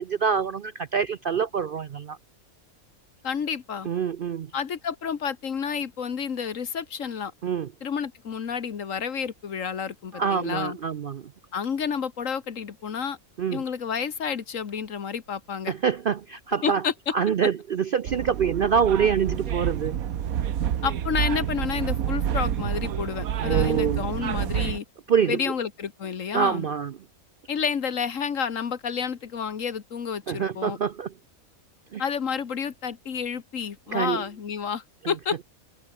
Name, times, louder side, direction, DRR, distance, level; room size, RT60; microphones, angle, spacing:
voice 1, 0.0-2.2 3.8-4.5 7.4-7.7 10.1-11.3 13.4-13.6 15.7-16.8 17.1-20.0 23.4-24.1 25.1-25.4 26.3-27.0 30.3-31.1 31.9-32.0 33.9-34.2, right 7 dB, 55° right, 0.6 m, -25 dB
voice 2, 3.2-3.9 4.5-7.3 7.8-10.8 11.5-13.2 13.5-15.7 16.6-16.9 20.8-24.8 25.3-26.7 27.5-30.8 32.0-35.4, left 7 dB, 65° left, 1.7 m, -30 dB
sound 1, 18.1-24.8, right 9 dB, 80° right, 1.4 m, -28 dB
omnidirectional pair, 1.5 m